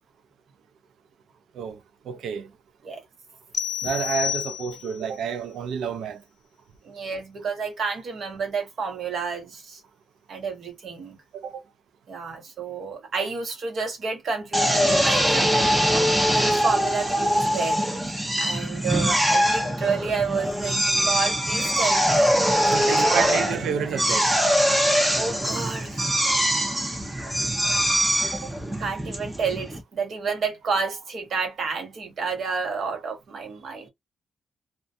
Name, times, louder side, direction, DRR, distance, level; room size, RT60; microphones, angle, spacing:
voice 1, 2.1-2.5 3.8-6.2 11.3-11.5 22.5-24.3 28.2-28.4, right 7 dB, 90° right, 0.4 m, -29 dB
sound 1, 3.5-5.1, left 9 dB, 50° left, 0.4 m, -29 dB
voice 2, 6.8-9.8 10.3-11.2 11.5-11.6 12.1-17.8 18.4-22.4 22.8-23.4 25.2-26.1 28.3-28.5 28.8-33.9, right 5 dB, 55° right, 1.0 m, -30 dB
Drill, 14.5-29.8, equal, 10° right, 0.5 m, -23 dB
2.3 x 2.2 x 2.5 m
wide cardioid pair, 140°, 0 cm